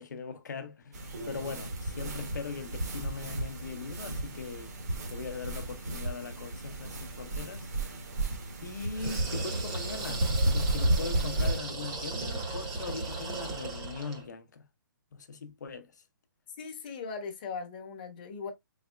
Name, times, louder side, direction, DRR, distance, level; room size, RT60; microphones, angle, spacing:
voice 1, 0.0-4.7 5.1-7.7 8.6-14.7 15.1-16.0, left 5 dB, 55° left, 0.8 m, -40 dB
sound 1, 0.9-11.6, right 1 dB, 45° right, 1.3 m, -33 dB
sound 2, 8.9-14.3, right 3 dB, 15° right, 0.8 m, -36 dB
voice 2, 16.6-18.5, left 5 dB, 25° left, 0.9 m, -39 dB
4.1 x 3.9 x 2.2 m
hypercardioid pair, 175°, 11 cm